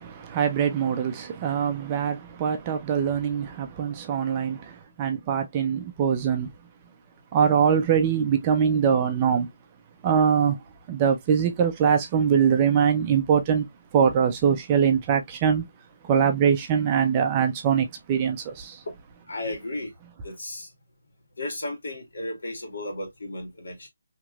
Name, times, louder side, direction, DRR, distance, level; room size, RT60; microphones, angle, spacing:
voice 1, 0.0-6.5 7.3-9.5 10.0-10.6 10.9-13.7 13.9-15.7 16.0-18.8, right 7 dB, 20° right, 0.4 m, -23 dB
voice 2, 19.3-19.9 20.2-20.7 21.4-23.9, left 1 dB, 75° left, 1.8 m, -34 dB
3.1 x 2.9 x 2.3 m
hypercardioid pair, 175°, 0 cm